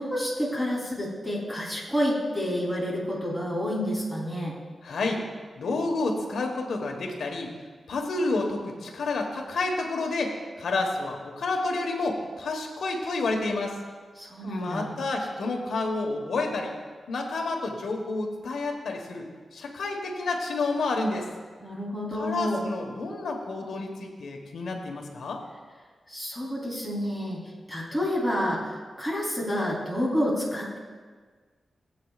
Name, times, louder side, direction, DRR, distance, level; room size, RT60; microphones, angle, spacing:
voice 1, 0.0-4.5 14.2-14.9 21.6-22.6 26.1-27.4 27.7-28.6 29.0-30.8, equal, 10° right, -5 dB, 3.7 m, -29 dB
voice 2, 4.8-5.2 5.6-7.5 7.9-13.8 14.4-16.7 17.1-21.3 22.1-25.4, left 3 dB, 85° left, 2 dB, 1.4 m, -30 dB
20.0 x 8.6 x 2.5 m, 1.5 s
cardioid pair, 80°, 0 cm